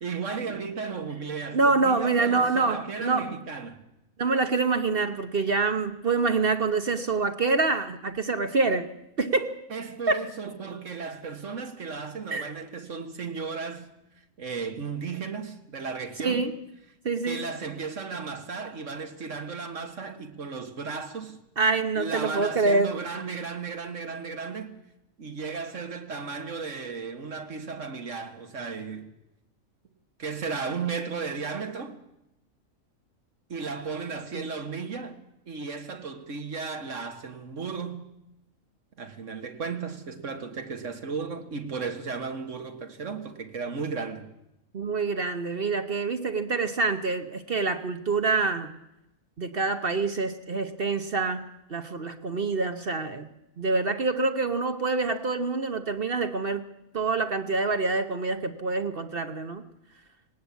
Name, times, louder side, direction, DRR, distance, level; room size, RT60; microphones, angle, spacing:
voice 1, 0.0-3.8 9.7-13.9 14.4-16.5 17.3-21.4 22.0-24.8 25.2-29.1 30.2-32.0 33.5-35.2 35.5-38.1 39.0-44.3, right 5 dB, 65° right, 2.0 m, -35 dB
voice 2, 1.5-3.3 4.2-8.9 9.2-9.5 10.1-10.2 12.3-12.5 16.2-16.5 17.0-17.4 21.6-22.9 34.3-34.5 44.7-48.7 49.4-51.4 51.7-53.3 53.6-56.6 56.9-59.6, right 3 dB, 45° right, 1.1 m, -26 dB
18.5 x 18.5 x 8.3 m
omnidirectional pair, 1.4 m